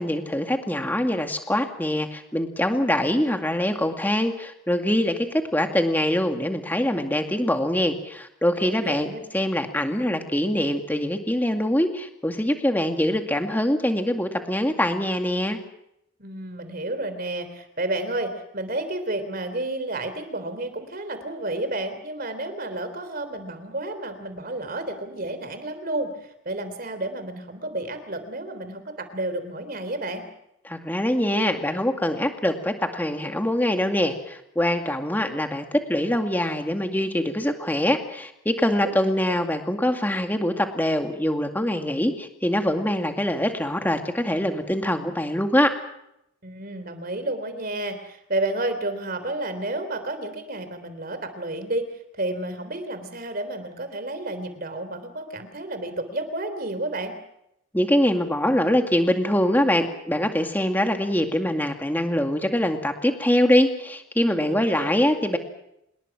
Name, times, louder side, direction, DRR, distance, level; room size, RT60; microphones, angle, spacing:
voice 1, 0.0-9.1 9.3-15.6 30.6-45.7 57.7-65.4, left 1 dB, 10° left, 5 dB, 2.2 m, -24 dB
voice 2, 8.6-9.2 16.2-26.1 26.5-30.2 38.8-38.9 46.4-51.9 52.1-57.1 64.4-64.9, right 2 dB, 45° right, 10 dB, 3.6 m, -31 dB
27.0 x 21.0 x 6.1 m, 0.81 s
head